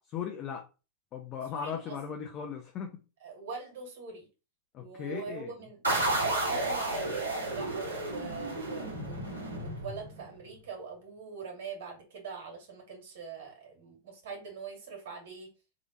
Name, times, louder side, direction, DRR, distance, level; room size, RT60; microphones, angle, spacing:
voice 1, 0.1-0.7 1.1-3.0 4.7-5.5, left 7 dB, 35° left, 0.7 m, -37 dB
voice 2, 1.5-2.0 3.2-4.3 4.8-15.5, right 5 dB, 55° right, 2.3 m, -43 dB
sound 1, 5.8-10.4, right 2 dB, 80° right, 1.7 m, -32 dB
3.7 x 3.5 x 3.9 m
figure-of-eight pair, 90°, 0 cm